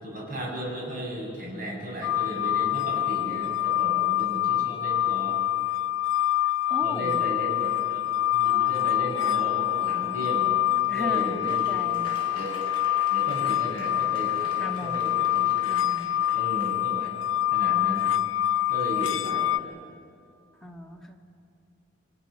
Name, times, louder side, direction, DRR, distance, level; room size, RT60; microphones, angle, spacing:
voice 1, 0.0-5.4 6.8-10.6 10.9-11.8 12.3-12.5 13.1-17.1 17.5-18.1 18.7-19.8, equal, 45° right, -3 dB, 7.6 m, -35 dB
sound 1, 2.0-19.6, left 13 dB, 80° left, 0.7 m, -26 dB
voice 2, 6.7-7.2 10.9-12.1 14.5-15.0 15.7-16.1 20.6-21.2, left 1 dB, ahead, -2 dB, 1.9 m, -37 dB
Laughter / Applause, 8.3-16.7, left 1 dB, 25° left, 6.6 m, -45 dB
30.0 x 23.5 x 6.6 m, 2.4 s
head